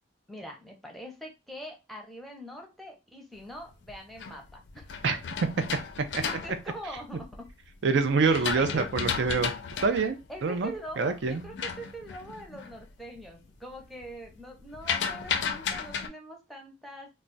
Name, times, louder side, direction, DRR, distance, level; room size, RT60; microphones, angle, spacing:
voice 1, 0.3-4.8 6.2-7.5 8.2-8.9 10.3-17.1, right 1 dB, ahead, 0 dB, 0.6 m, -43 dB
sound 1, 3.7-7.5 8.0-12.8 13.2-13.6 13.9-16.1, left 6 dB, 75° left, 0.4 m, -34 dB
voice 2, 7.8-9.5 9.8-10.7 11.0-11.4, right 4 dB, 80° right, 8 dB, 0.4 m, -25 dB
2.3 x 2.1 x 3.8 m, 0.26 s
head